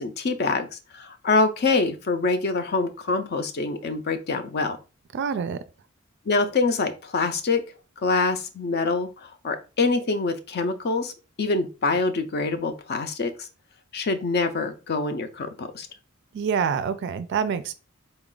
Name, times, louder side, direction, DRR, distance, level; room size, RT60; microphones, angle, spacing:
voice 1, 0.0-4.8 6.3-7.6 8.0-11.1 11.4-13.5 13.9-15.9, left 3 dB, 50° left, 0.5 m, -25 dB
voice 2, 5.1-5.6 16.3-17.7, right 6 dB, 55° right, 0.3 m, -26 dB
4.0 x 2.3 x 3.7 m
head